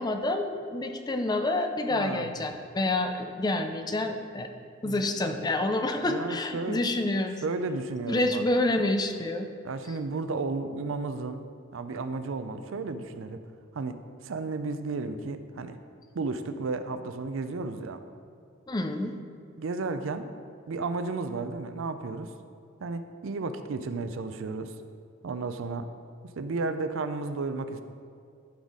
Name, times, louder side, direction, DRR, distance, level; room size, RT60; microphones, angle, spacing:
voice 1, 0.0-4.5 4.8-7.4 8.1-9.5 18.7-19.1, left 2 dB, 20° left, 6 dB, 0.5 m, -28 dB
voice 2, 1.9-2.3 4.8-5.1 6.1-6.8 7.4-8.4 9.6-11.5 11.7-13.5 13.7-15.8 16.1-18.0 19.6-20.3 20.7-22.3 22.8-24.7 25.2-25.9 26.4-27.8, right 3 dB, 70° right, 9 dB, 0.5 m, -33 dB
11.5 x 4.1 x 4.8 m, 2.3 s
head